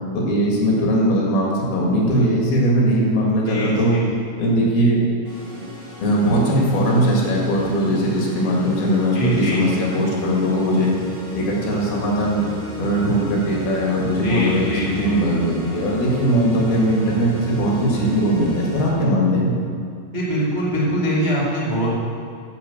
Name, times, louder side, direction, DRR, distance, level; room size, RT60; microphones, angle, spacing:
voice 1, 0.1-4.0 4.4-5.0 6.0-11.0 11.3-12.4 12.8-14.7 15.0-19.5, equal, 60° left, -3 dB, 3.8 m, -19 dB
voice 2, 3.4-4.0 9.1-9.8 14.2-15.2 20.1-21.9, equal, 80° right, -8 dB, 0.4 m, -22 dB
sound 1, 5.2-18.9, equal, ahead, 1.5 m, -36 dB
10.0 x 6.3 x 8.1 m, 2.3 s
omnidirectional pair, 5.1 m